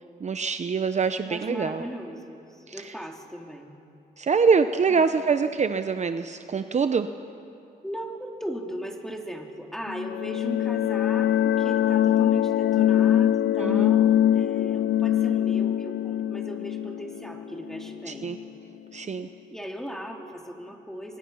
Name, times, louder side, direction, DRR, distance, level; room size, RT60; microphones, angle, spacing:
voice 1, 0.2-1.9 2.7-2.9 4.2-7.1 13.6-13.9 18.1-18.4 18.9-19.3, right 5 dB, 40° right, 9 dB, 0.9 m, -24 dB
voice 2, 1.3-3.7 4.9-5.4 7.8-18.3 19.5-21.2, equal, ahead, 2 dB, 3.1 m, -38 dB
sound 1, 9.9-18.4, left 11 dB, 75° left, 0.6 m, -23 dB
29.5 x 23.5 x 5.7 m, 2.7 s
cardioid pair, 80°, 18 cm